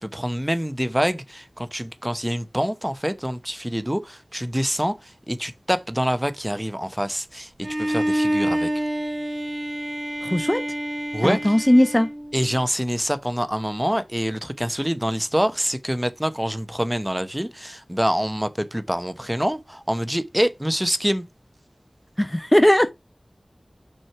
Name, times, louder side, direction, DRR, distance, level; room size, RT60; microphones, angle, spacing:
voice 1, 0.0-8.7 11.1-11.5 12.3-21.2, equal, 10° right, 0.8 m, -26 dB
Bowed string instrument, 7.6-12.6, equal, 40° right, 2.4 m, -27 dB
voice 2, 10.2-10.6 11.2-12.1 22.2-22.9, left 1 dB, 15° left, 0.6 m, -18 dB
6.2 x 4.4 x 4.6 m
wide cardioid pair, 40°, 0 cm